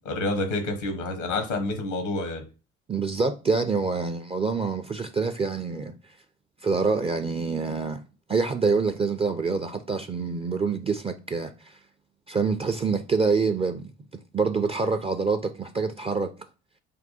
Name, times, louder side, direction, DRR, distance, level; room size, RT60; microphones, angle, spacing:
voice 1, 0.0-2.4, left 2 dB, 80° left, 1.1 m, -28 dB
voice 2, 2.9-5.9 6.6-8.0 8.3-11.8 12.3-13.9 14.3-16.3, right 4 dB, 15° right, 0.4 m, -26 dB
3.5 x 2.2 x 4.1 m
figure-of-eight pair, 55°, 37 cm